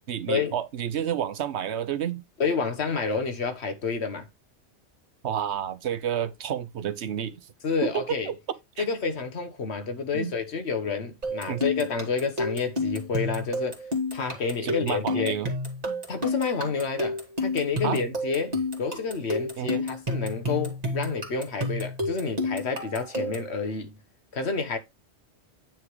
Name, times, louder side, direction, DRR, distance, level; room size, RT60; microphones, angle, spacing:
voice 1, 0.0-2.2 5.2-7.4 7.8-8.4 8.8-8.9 10.1-10.3 11.5-11.6 14.6-15.5 17.8-18.0 19.6-19.8, right 9 dB, 75° right, 1.0 m, -30 dB
voice 2, 2.4-4.2 7.6-8.3 8.8-13.8 14.1-15.4 16.1-24.0 24.3-24.8, left 5 dB, 70° left, 1.4 m, -29 dB
sound 1, 11.2-23.5, left 2 dB, 35° right, 2.0 m, -30 dB
9.2 x 3.6 x 4.8 m
omnidirectional pair, 1.1 m